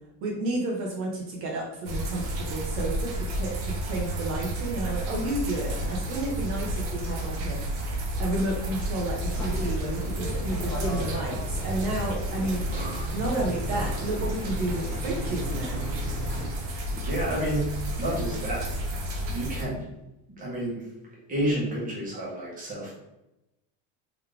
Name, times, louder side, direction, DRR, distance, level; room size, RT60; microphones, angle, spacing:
voice 1, 0.2-7.9 8.2-12.6 13.1-15.9, right 1 dB, 55° right, -2 dB, 1.0 m, -31 dB
sound 1, 1.8-19.6, right 1 dB, 70° right, 1.3 m, -31 dB
sound 2, 9.2-16.5, right 1 dB, 5° left, 0.8 m, -37 dB
voice 2, 12.6-13.0 16.5-16.6 16.9-18.7 19.3-19.8 20.4-20.9 21.3-23.0, right 1 dB, 20° right, -5 dB, 1.4 m, -30 dB
3.9 x 3.1 x 3.3 m, 0.92 s
supercardioid pair, 150°, 44 cm